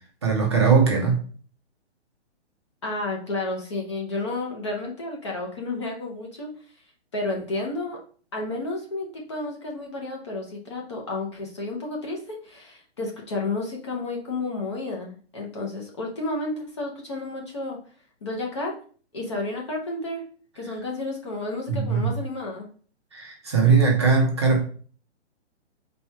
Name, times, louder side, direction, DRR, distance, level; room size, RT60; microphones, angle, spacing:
voice 1, 0.2-1.2 21.7-22.2 23.1-24.6, right 5 dB, 25° right, -1 dB, 0.6 m, -20 dB
voice 2, 2.8-6.5 7.1-8.0 8.3-17.8 18.2-18.7 19.1-20.2 20.5-22.7, left 2 dB, 25° left, -1 dB, 0.6 m, -31 dB
4.3 x 2.3 x 4.3 m, 0.43 s
hypercardioid pair, 165°, 34 cm